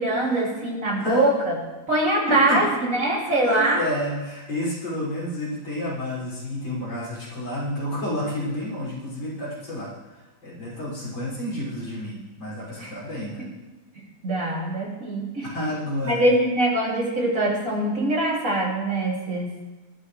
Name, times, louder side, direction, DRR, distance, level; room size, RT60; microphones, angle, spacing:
voice 1, 0.0-1.6 1.9-3.8 12.8-12.9 14.2-15.5 16.1-19.5, right 1 dB, 40° right, -3 dB, 3.4 m, -23 dB
voice 2, 2.3-2.6 3.4-9.9 10.4-13.5 15.5-16.2, left 1 dB, 65° left, -7 dB, 7.1 m, -30 dB
20.0 x 13.0 x 3.3 m, 1.2 s
omnidirectional pair, 2.2 m